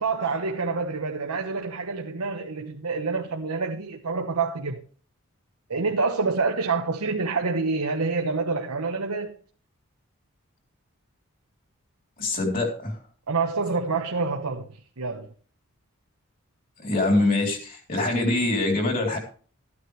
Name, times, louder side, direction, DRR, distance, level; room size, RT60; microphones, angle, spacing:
voice 1, 0.0-4.8 5.7-9.3 13.3-15.3, right 4 dB, 85° right, 1.0 m, -27 dB
voice 2, 12.2-13.0 16.8-19.2, left 2 dB, 40° left, 3.4 m, -24 dB
14.5 x 9.7 x 3.3 m
head